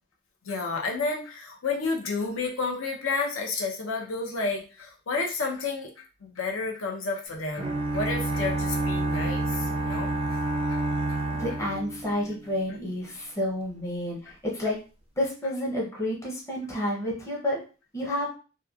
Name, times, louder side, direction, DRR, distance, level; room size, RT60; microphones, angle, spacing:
voice 1, 0.4-10.4 10.7-10.8 11.1-11.2, left 3 dB, 85° left, 0 dB, 0.6 m, -31 dB
sound 1, 7.6-12.6, right 2 dB, 25° right, 0.3 m, -28 dB
voice 2, 11.4-14.8 15.2-17.6 17.9-18.3, left 1 dB, 15° left, -3 dB, 0.6 m, -30 dB
2.9 x 2.2 x 2.3 m, 0.35 s
head